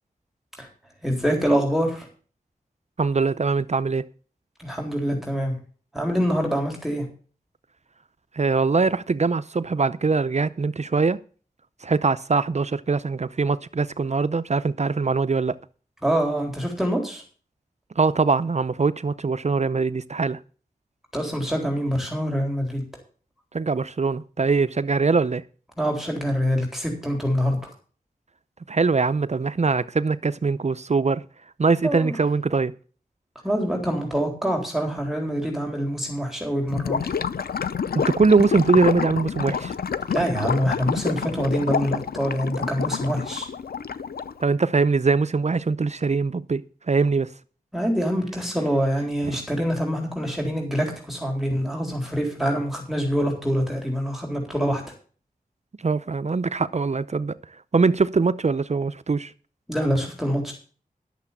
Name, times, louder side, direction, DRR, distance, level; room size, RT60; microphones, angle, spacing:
voice 1, 1.0-2.1 4.6-5.6 5.9-7.1 16.0-17.2 21.1-22.8 25.8-27.6 31.8-32.1 33.4-37.1 40.1-43.5 47.7-54.8 59.7-60.5, equal, ahead, 3.8 m, -25 dB
voice 2, 3.0-4.1 8.3-11.2 11.8-15.6 18.0-20.4 23.5-25.4 28.7-31.2 31.6-32.7 34.9-35.0 37.9-39.7 44.4-47.3 49.3-49.4 55.8-57.3 57.7-59.3, right 4 dB, 45° right, 0.6 m, -22 dB
Gurgling / Liquid, 36.7-44.4, left 6 dB, 90° left, 0.6 m, -28 dB
11.5 x 6.9 x 7.2 m
wide cardioid pair, 55°, 15 cm